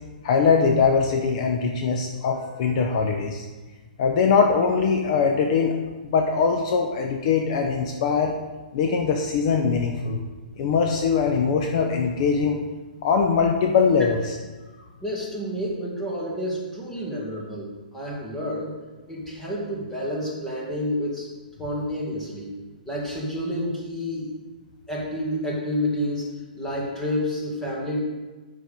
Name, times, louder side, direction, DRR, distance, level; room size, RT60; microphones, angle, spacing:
voice 1, 0.2-3.4 4.0-5.7 6.0-8.3 8.7-10.2 10.6-12.6 13.0-14.4, left 5 dB, 45° left, 3 dB, 0.8 m, -22 dB
voice 2, 15.0-18.7 19.1-21.3 21.6-22.6 22.9-24.3 24.9-28.0, left 1 dB, 5° left, -5 dB, 2.0 m, -29 dB
8.0 x 5.9 x 5.1 m, 1.3 s
hypercardioid pair, 150°, 5 cm